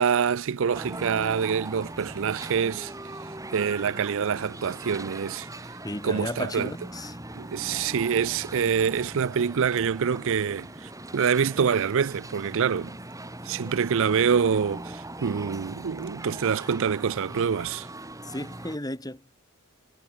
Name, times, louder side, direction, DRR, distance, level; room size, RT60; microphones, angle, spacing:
voice 1, 0.0-2.9 3.5-5.8 6.0-6.7 7.4-12.9 13.4-17.9, right 6 dB, 60° right, 0.5 m, -26 dB
sound 1, 0.7-18.8, right 1 dB, 15° right, 6.5 m, -40 dB
voice 2, 5.8-7.2 18.2-19.4, left 1 dB, 15° left, 7.0 m, -34 dB
head